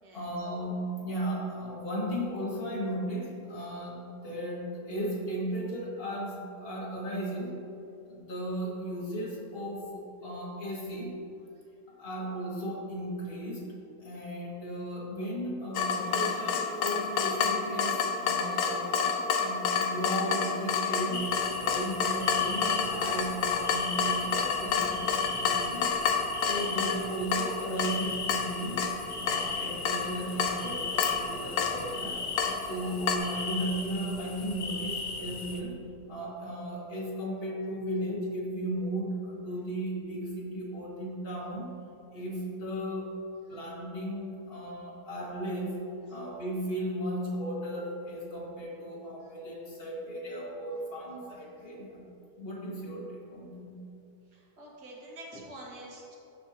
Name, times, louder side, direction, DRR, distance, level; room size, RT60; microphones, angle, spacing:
voice 1, 0.1-7.6 8.1-11.1 12.0-13.7 14.0-18.9 19.3-21.3 21.6-25.9 26.5-28.8 29.2-32.2 32.7-35.8 36.1-41.7 42.1-43.1 43.5-45.8 46.1-52.0 52.4-53.8, right 1 dB, 35° left, -5 dB, 2.0 m, -35 dB
Water tap faucet / Drip, 15.7-33.2, left 6 dB, 90° left, 1.3 m, -30 dB
sound 1, 21.1-35.6, left 4 dB, 60° left, 0.4 m, -38 dB
voice 2, 54.3-56.2, right 1 dB, 90° right, -4 dB, 2.2 m, -46 dB
16.0 x 5.4 x 2.9 m, 2.7 s
omnidirectional pair, 1.7 m